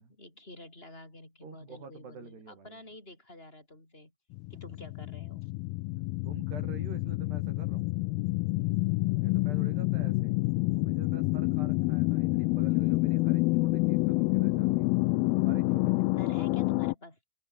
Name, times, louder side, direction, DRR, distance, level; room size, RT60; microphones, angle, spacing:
voice 1, 0.0-4.1 4.5-5.5 16.2-17.2, left 1 dB, 15° left, 6.4 m, -49 dB
voice 2, 1.4-2.8 6.2-7.9 9.2-10.4 10.7-14.9 15.4-16.7, right 5 dB, 75° right, 8.3 m, -48 dB
sound 1, 4.3-16.9, left 23 dB, 85° left, 2.1 m, -28 dB
omnidirectional pair, 4.8 m